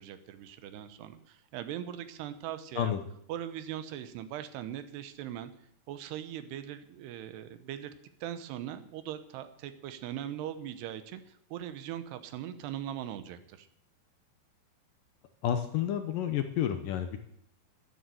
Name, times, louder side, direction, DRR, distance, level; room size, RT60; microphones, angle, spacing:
voice 1, 0.0-2.9 3.3-5.5 5.9-7.9 8.2-13.7, right 11 dB, 85° right, 11 dB, 3.1 m, -40 dB
voice 2, 15.4-17.2, left 10 dB, 70° left, 7 dB, 2.2 m, -30 dB
12.5 x 10.0 x 7.7 m, 0.70 s
omnidirectional pair, 4.7 m